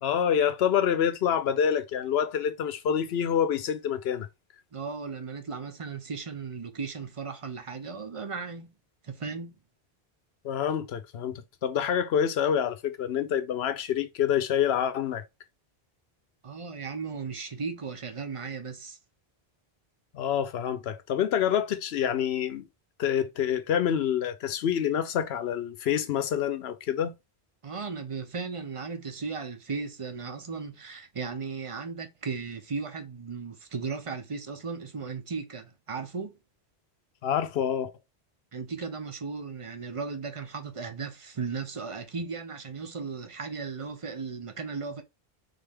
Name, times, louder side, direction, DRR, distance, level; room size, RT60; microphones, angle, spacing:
voice 1, 0.0-4.3 10.4-15.2 20.1-22.7 23.0-27.1 37.2-37.9, left 8 dB, 80° left, 0.9 m, -27 dB
voice 2, 4.7-8.7 9.0-9.6 16.4-19.0 27.6-36.4 38.5-45.0, right 5 dB, 35° right, 0.8 m, -36 dB
3.7 x 3.4 x 3.5 m
omnidirectional pair, 1.0 m